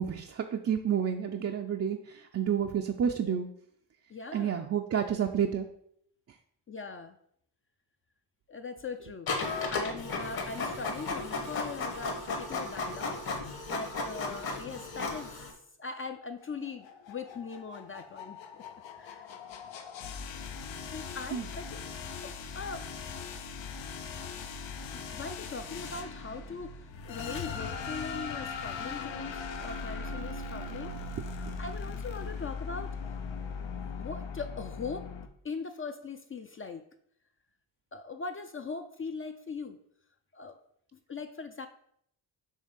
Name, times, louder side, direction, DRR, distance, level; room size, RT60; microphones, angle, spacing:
voice 1, 0.0-3.5 4.3-5.7 21.3-21.5 31.5-31.6, right 8 dB, 35° right, 3 dB, 0.4 m, -30 dB
voice 2, 4.1-4.7 6.7-7.2 8.5-15.4 15.8-18.6 18.9-19.3 20.9-21.8 22.2-22.9 23.4-23.5 25.1-30.9 31.6-33.0 34.0-35.1 35.4-36.8 37.9-39.8 40.3-40.6 40.9-41.7, left 4 dB, 30° left, 7 dB, 0.4 m, -40 dB
Printer, 9.3-15.5, left 3 dB, 55° left, 1.4 m, -35 dB
sound 1, 16.4-35.3, left 5 dB, 90° left, 0.8 m, -40 dB
6.5 x 3.3 x 5.2 m, 0.68 s
wide cardioid pair, 130°, 44 cm